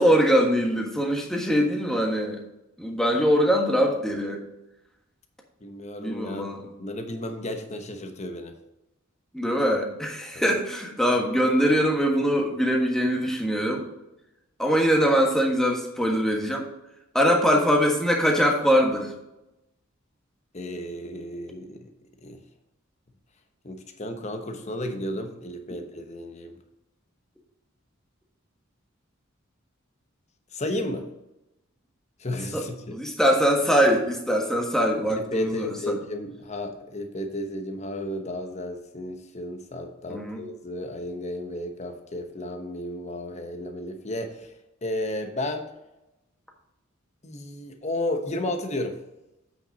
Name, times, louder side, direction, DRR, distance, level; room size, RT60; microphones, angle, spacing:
voice 1, 0.0-2.4 2.8-4.4 6.0-6.7 9.3-13.8 14.6-16.7 17.1-19.1 32.5-36.0 40.1-40.4, equal, ahead, 0 dB, 1.4 m, -22 dB
voice 2, 5.6-8.6 10.3-10.4 20.5-21.9 22.2-22.4 23.6-26.5 30.5-31.1 32.2-33.0 35.1-44.5 44.8-45.7 47.2-49.0, left 1 dB, 35° left, 6 dB, 1.0 m, -33 dB
8.4 x 6.0 x 4.1 m, 0.92 s
head